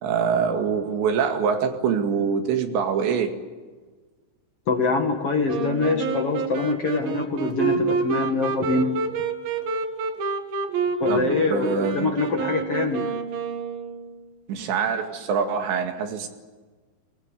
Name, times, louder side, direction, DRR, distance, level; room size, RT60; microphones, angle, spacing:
voice 1, 0.0-3.3 11.1-12.1 14.5-16.3, right 6 dB, 90° right, 5 dB, 4.4 m, -24 dB
voice 2, 4.7-9.0 11.0-13.1, left 4 dB, 45° left, 3 dB, 2.3 m, -24 dB
Wind instrument woodwind instrument, 5.5-14.2, right 5 dB, 65° right, 3.5 m, -28 dB
23.0 x 20.5 x 9.8 m, 1.4 s
omnidirectional pair, 4.9 m